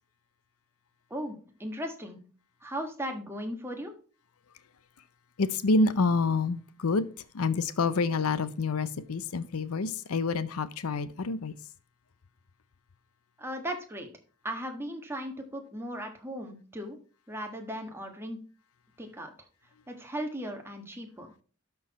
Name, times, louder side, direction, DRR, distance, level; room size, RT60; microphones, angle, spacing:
voice 1, 1.1-2.2 2.6-3.9 13.4-14.1 14.4-17.0 17.3-18.4 19.0-19.3 19.9-21.3, equal, 10° right, 1.4 m, -37 dB
voice 2, 5.4-7.0 7.3-11.5, left 3 dB, 85° left, 0.6 m, -27 dB
12.5 x 4.6 x 4.1 m
head